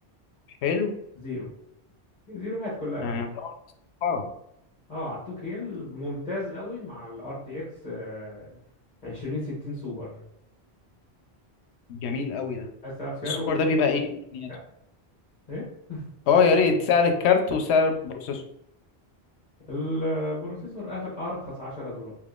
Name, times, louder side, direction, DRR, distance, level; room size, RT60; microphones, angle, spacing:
voice 1, 0.6-0.9 3.0-3.5 4.0-4.3 11.9-12.7 13.2-14.5 16.3-18.4, left 5 dB, 90° left, 5 dB, 0.8 m, -23 dB
voice 2, 1.2-1.5 2.3-3.2 4.9-8.5 9.0-10.2 12.8-13.7 14.5-14.6 15.5-16.0 19.7-22.1, left 1 dB, 40° left, -7 dB, 1.1 m, -33 dB
3.5 x 3.0 x 2.4 m, 0.75 s
omnidirectional pair, 1.1 m